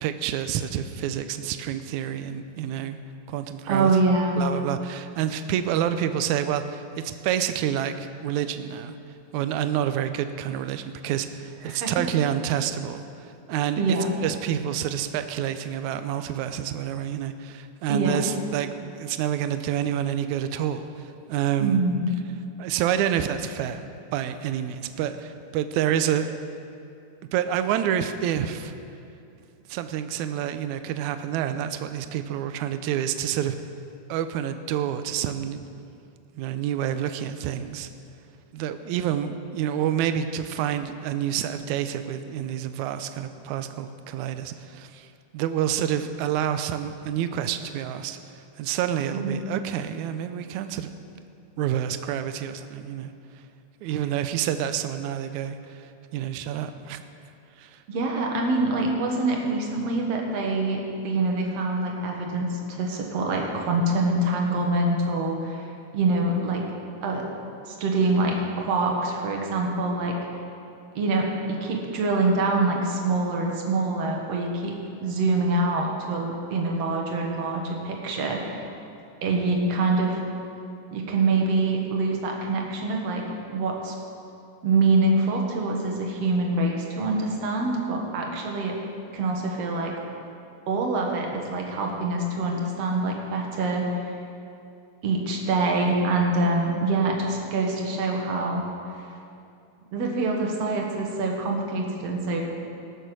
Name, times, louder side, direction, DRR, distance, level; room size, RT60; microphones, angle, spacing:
voice 1, 0.0-3.0 3.3-3.9 4.4-9.0 9.3-13.8 14.2-18.7 19.0-21.8 22.6-26.4 27.3-28.7 29.7-33.6 34.1-35.6 36.4-37.9 38.5-50.9 51.6-53.1 53.8-57.0 57.6-57.8, right 10 dB, 80° right, 10 dB, 1.8 m, -28 dB
voice 2, 3.7-4.4 11.6-12.1 13.8-14.1 17.9-18.3 21.6-22.2 49.1-49.3 57.9-65.6 65.9-66.6 67.0-67.3 67.6-70.2 71.0-74.7 75.0-78.7 79.2-80.2 80.9-83.2 83.5-83.9 84.6-88.7 89.1-89.9 90.7-94.1 95.0-98.7 99.9-102.4, right 2 dB, 55° right, 0 dB, 2.4 m, -25 dB
20.0 x 6.8 x 6.2 m, 2.5 s
omnidirectional pair, 3.8 m